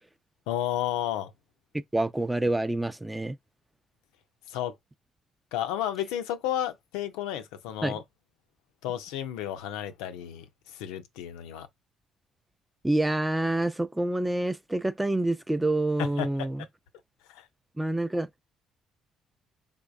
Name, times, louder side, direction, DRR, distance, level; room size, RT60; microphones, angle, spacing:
voice 1, 0.5-1.3 4.5-4.7 5.5-8.0 8.8-11.7 16.0-16.3 17.3-17.5, left 11 dB, 75° left, 0.4 m, -32 dB
voice 2, 1.7-3.4 7.8-8.0 12.8-16.7 17.8-18.3, right 1 dB, 10° right, 0.4 m, -27 dB
3.8 x 3.5 x 2.3 m
hypercardioid pair, 50°, 0 cm